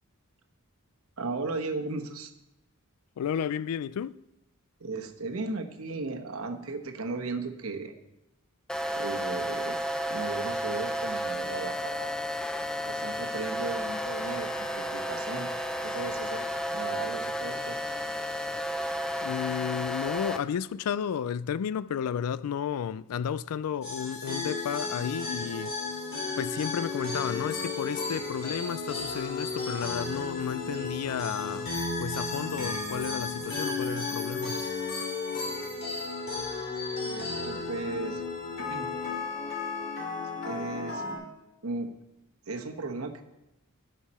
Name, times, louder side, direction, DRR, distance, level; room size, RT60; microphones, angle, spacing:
voice 1, 1.2-2.3 4.8-7.9 8.9-9.8 10.1-12.1 12.8-15.5 15.8-17.8 37.0-38.2 38.6-38.9 40.4-41.0 41.6-41.9 42.5-43.2, right 3 dB, 70° right, 1.1 m, -36 dB
voice 2, 3.2-4.2 19.2-25.8 26.4-31.7 32.0-34.6, left 8 dB, 85° left, 0.3 m, -32 dB
sound 1, 8.7-20.4, equal, 5° left, 0.3 m, -32 dB
sound 2, 23.8-41.2, left 3 dB, 45° left, 2.5 m, -34 dB
15.0 x 5.6 x 4.2 m
head